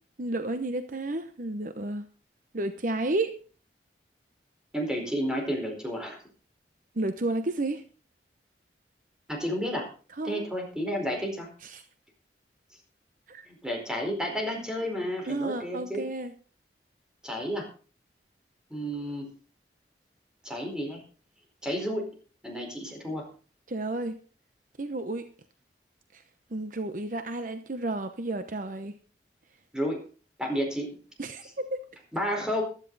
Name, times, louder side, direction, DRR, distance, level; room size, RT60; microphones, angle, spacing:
voice 1, 0.2-2.0 2.5-3.3 7.0-7.8 10.1-10.4 11.6-11.8 13.3-13.5 15.3-16.3 23.7-24.2 24.8-25.3 26.1-26.2 26.5-28.9 31.2-31.4, right 2 dB, 50° right, 9 dB, 0.9 m, -31 dB
voice 2, 4.7-6.2 9.3-9.9 10.2-11.5 13.5-16.0 17.2-17.7 18.7-19.3 20.4-21.0 21.6-22.1 22.4-23.3 29.7-30.0 30.4-31.0 32.1-32.6, equal, 5° right, 1 dB, 4.5 m, -31 dB
15.5 x 12.5 x 4.1 m, 0.38 s
head